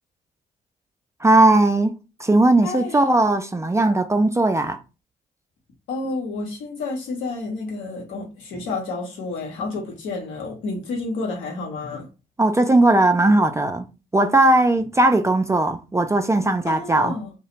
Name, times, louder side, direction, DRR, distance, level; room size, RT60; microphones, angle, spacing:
voice 1, 1.2-1.9 2.2-4.8 12.4-13.9 14.1-17.2, right 2 dB, 15° right, 0.3 m, -18 dB
voice 2, 2.6-3.1 5.9-12.1 16.6-17.3, left 3 dB, 75° left, 0.9 m, -30 dB
2.4 x 2.1 x 2.9 m
hypercardioid pair, 45°, 21 cm